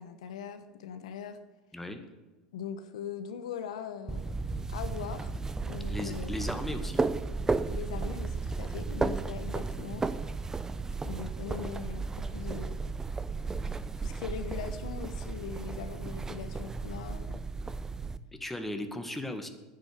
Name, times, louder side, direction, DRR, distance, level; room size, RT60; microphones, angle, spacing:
voice 1, 0.0-1.4 2.5-4.2 4.7-5.3 5.7-6.3 7.7-10.1 11.0-12.8 14.0-17.4, left 7 dB, 80° left, 10 dB, 1.1 m, -41 dB
sound 1, 4.1-18.2, right 3 dB, 15° right, 0.7 m, -34 dB
voice 2, 5.9-7.0 18.4-19.5, left 1 dB, 5° left, 6 dB, 1.6 m, -37 dB
9.7 x 7.9 x 8.4 m, 1.2 s
hypercardioid pair, 90°, 3 cm